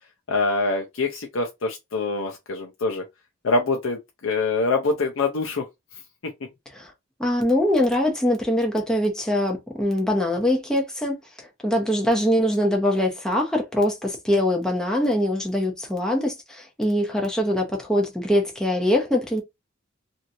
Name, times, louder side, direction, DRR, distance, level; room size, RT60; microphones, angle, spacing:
voice 1, 0.3-3.0 3.4-5.6, left 3 dB, 80° left, 0.6 m, -24 dB
voice 2, 7.2-19.4, left 1 dB, 5° left, 0.7 m, -23 dB
2.9 x 2.7 x 2.6 m
head